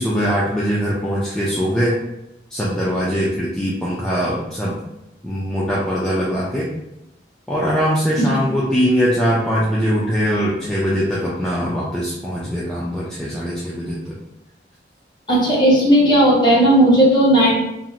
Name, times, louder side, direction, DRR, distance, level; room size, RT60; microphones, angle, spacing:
voice 1, 0.0-2.0 2.5-4.8 5.2-6.7 7.5-14.0, equal, 5° left, -7 dB, 0.3 m, -21 dB
voice 2, 15.3-17.5, right 1 dB, 25° left, -5 dB, 0.8 m, -14 dB
2.9 x 2.5 x 2.4 m, 0.89 s
head